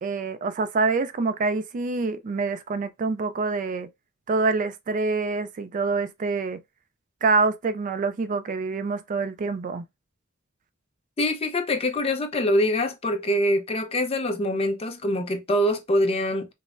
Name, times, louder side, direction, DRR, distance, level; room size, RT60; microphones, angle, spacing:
voice 1, 0.0-3.9 4.3-6.6 7.2-9.8, right 4 dB, 40° right, 0.3 m, -26 dB
voice 2, 11.2-16.5, left 1 dB, 30° left, 0.5 m, -24 dB
5.2 x 2.0 x 2.5 m
head